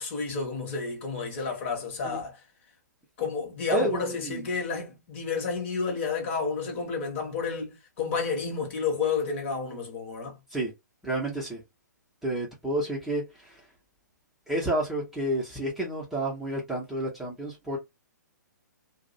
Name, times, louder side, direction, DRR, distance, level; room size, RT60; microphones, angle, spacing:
voice 1, 0.0-2.3 3.2-10.4, left 5 dB, 40° left, 1.0 m, -31 dB
voice 2, 3.7-4.5 10.5-10.7 11.0-11.6 12.2-13.6 14.5-17.8, right 1 dB, 5° right, 0.7 m, -30 dB
2.5 x 2.0 x 2.6 m
figure-of-eight pair, 125°, 10 cm